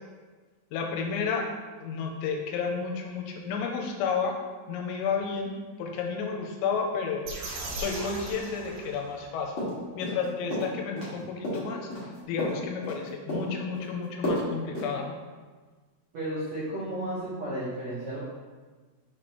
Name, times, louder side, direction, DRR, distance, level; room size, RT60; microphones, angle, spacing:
voice 1, 0.7-1.5 1.8-4.4 4.7-5.5 5.8-7.3 7.7-9.7 9.9-11.9 12.3-15.1, left 5 dB, 90° left, 2 dB, 3.3 m, -31 dB
sound 1, 7.2-9.4, right 2 dB, 65° right, 2.0 m, -38 dB
sound 2, 9.6-10.3 10.5-11.1 11.4-13.0 13.3-13.9 14.2-14.5 14.7-14.9, equal, 60° left, 1.3 m, -31 dB
voice 2, 16.1-18.2, right 1 dB, 85° right, -10 dB, 1.5 m, -33 dB
6.6 x 6.1 x 3.2 m, 1.4 s
omnidirectional pair, 6.0 m